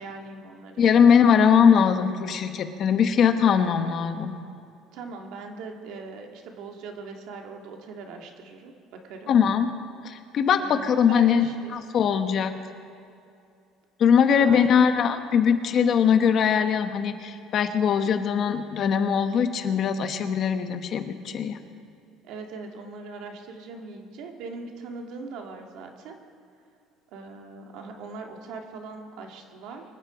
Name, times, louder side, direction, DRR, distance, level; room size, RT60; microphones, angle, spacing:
voice 1, 0.0-0.8 4.9-9.3 10.6-11.7 14.3-14.9 16.9-17.0 22.2-26.2 27.1-29.8, right 4 dB, 65° right, 3 dB, 1.9 m, -40 dB
voice 2, 0.8-4.4 9.3-9.7 10.0-11.5 11.7-12.5 14.0-21.6, left 7 dB, 40° left, 8 dB, 1.1 m, -21 dB
24.0 x 10.5 x 5.0 m, 2.5 s
cardioid pair, 155°, 0 cm